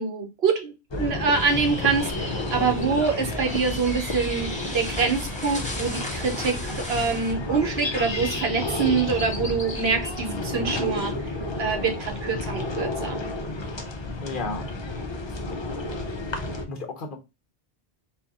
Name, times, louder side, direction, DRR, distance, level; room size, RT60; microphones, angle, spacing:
voice 1, 0.0-11.1 11.6-13.2, right 5 dB, 65° right, 1.2 m, -25 dB
sound 1, 0.9-16.6, left 2 dB, 30° left, 0.5 m, -31 dB
sound 2, 1.4-7.3, left 1 dB, 5° left, 1.0 m, -36 dB
voice 2, 14.2-14.7 15.3-15.4 16.7-17.2, left 3 dB, 50° left, 1.0 m, -33 dB
4.3 x 2.6 x 3.5 m
omnidirectional pair, 1.1 m